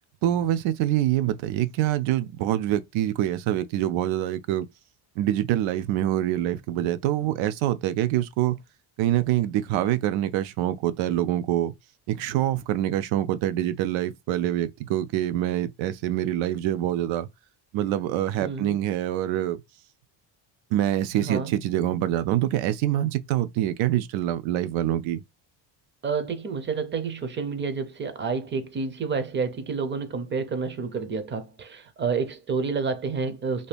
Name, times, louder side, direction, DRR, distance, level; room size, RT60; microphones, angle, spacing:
voice 1, 0.2-4.7 5.2-8.6 9.0-11.7 12.1-17.3 17.7-19.6 20.7-25.2, right 13 dB, 85° right, 0.5 m, -25 dB
voice 2, 18.4-18.8 21.2-21.5 26.0-33.7, right 5 dB, 25° right, 0.5 m, -29 dB
2.7 x 2.6 x 3.3 m
cardioid pair, 140°, 46 cm